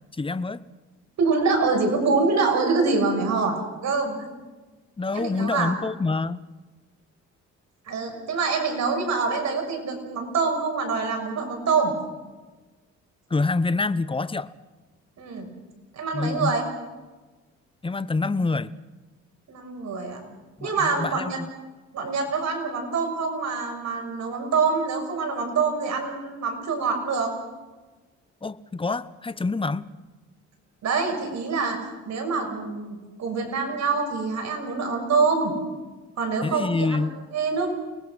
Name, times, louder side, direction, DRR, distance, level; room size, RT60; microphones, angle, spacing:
voice 1, 0.2-0.6 5.0-6.4 13.3-14.5 16.1-16.6 17.8-18.7 20.6-21.5 28.4-29.9 36.4-37.2, left 3 dB, 15° left, 15 dB, 1.0 m, -26 dB
voice 2, 1.2-4.3 5.1-5.7 7.9-11.9 15.2-15.5 15.9-16.7 19.5-20.2 20.6-21.4 21.9-27.3 30.8-31.8 32.0-35.5 36.2-37.7, right 4 dB, 65° right, 3 dB, 6.7 m, -25 dB
29.5 x 20.0 x 6.3 m, 1.2 s
cardioid pair, 90°, 30 cm